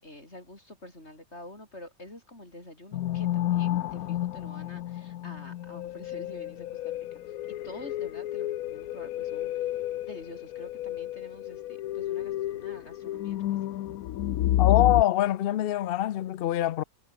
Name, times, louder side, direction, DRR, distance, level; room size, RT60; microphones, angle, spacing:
voice 1, 0.0-7.2 7.5-9.5 10.1-13.4 13.6-13.8, left 1 dB, 50° left, 8.3 m, -47 dB
sound 1, 2.9-15.0, left 13 dB, 85° left, 1.1 m, -30 dB
voice 2, 14.6-16.8, left 13 dB, 70° left, 0.5 m, -24 dB
omnidirectional pair, 1.5 m